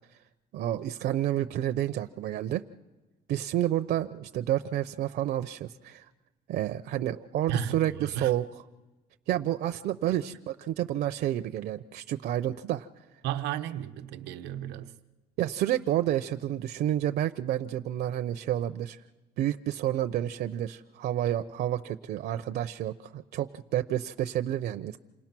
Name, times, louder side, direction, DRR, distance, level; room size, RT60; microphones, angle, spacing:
voice 1, 0.5-2.6 3.3-6.1 6.5-8.5 9.3-12.9 15.4-19.0 19.4-25.0, right 12 dB, 70° right, 0.7 m, -30 dB
voice 2, 7.5-8.3 13.2-14.9, right 9 dB, 90° right, 1.1 m, -34 dB
28.0 x 19.0 x 6.0 m
cardioid pair, 110°, 17 cm